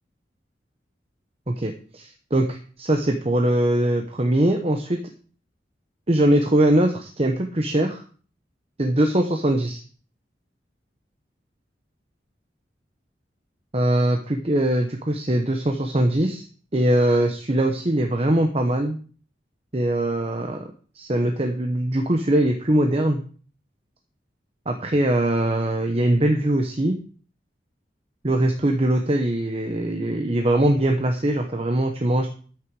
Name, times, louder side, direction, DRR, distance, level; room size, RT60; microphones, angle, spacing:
voice 1, 1.5-5.0 6.1-8.0 8.8-9.8 13.7-16.4 16.7-19.0 19.7-20.6 20.9-23.2 24.7-27.0 28.2-32.3, right 1 dB, 35° right, 4 dB, 1.0 m, -21 dB
13.5 x 6.5 x 4.8 m, 0.41 s
head